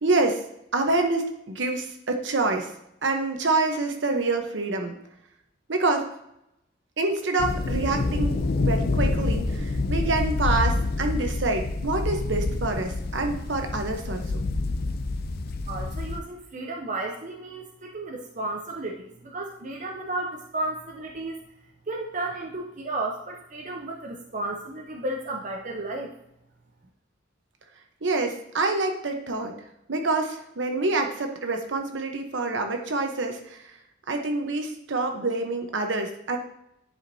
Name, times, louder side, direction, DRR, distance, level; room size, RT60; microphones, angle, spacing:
voice 1, 0.0-0.4 0.7-2.7 3.0-5.0 5.7-6.1 7.0-14.4 28.0-29.5 29.9-33.7 34.1-36.4, right 3 dB, 70° right, 4 dB, 0.9 m, -27 dB
sound 1, 7.4-16.2, left 3 dB, 50° left, 0.5 m, -27 dB
voice 2, 15.7-21.4 21.9-26.1, right 2 dB, 40° right, 0 dB, 0.6 m, -33 dB
10.5 x 5.0 x 2.7 m, 0.81 s
head